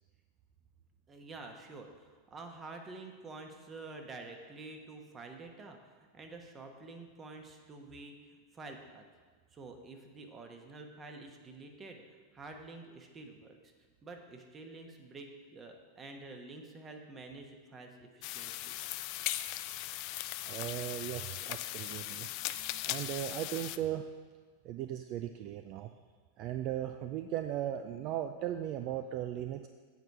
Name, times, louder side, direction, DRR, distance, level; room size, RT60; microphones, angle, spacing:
voice 1, 1.1-9.0 9.5-13.7 14.0-18.7, right 3 dB, 25° right, 4 dB, 1.1 m, -49 dB
sound 1, 18.2-23.8, left 15 dB, 50° left, 0.3 m, -38 dB
voice 2, 20.5-24.1 24.6-25.9 26.4-29.7, right 11 dB, 50° right, 8 dB, 0.4 m, -37 dB
7.9 x 4.6 x 6.6 m, 1.5 s
hypercardioid pair, 105°, 0 cm